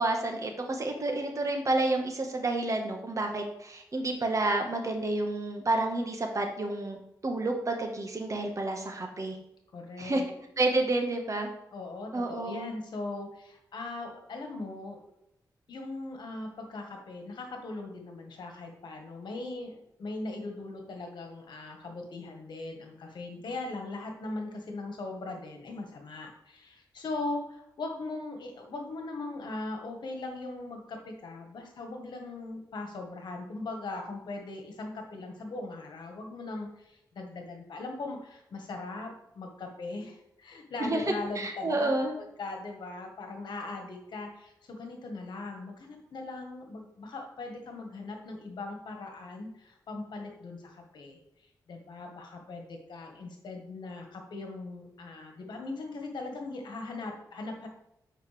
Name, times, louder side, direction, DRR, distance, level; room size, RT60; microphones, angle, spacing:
voice 1, 0.0-7.0 7.2-9.4 10.0-10.2 10.6-11.5 12.1-12.7 40.8-42.1, right 2 dB, 45° right, 3 dB, 1.5 m, -29 dB
voice 2, 9.7-10.3 11.7-15.0 15.7-41.9 42.2-51.2 51.7-57.7, left 2 dB, 80° left, 3 dB, 1.5 m, -39 dB
8.3 x 5.5 x 3.4 m, 0.83 s
cardioid pair, 70°, 8 cm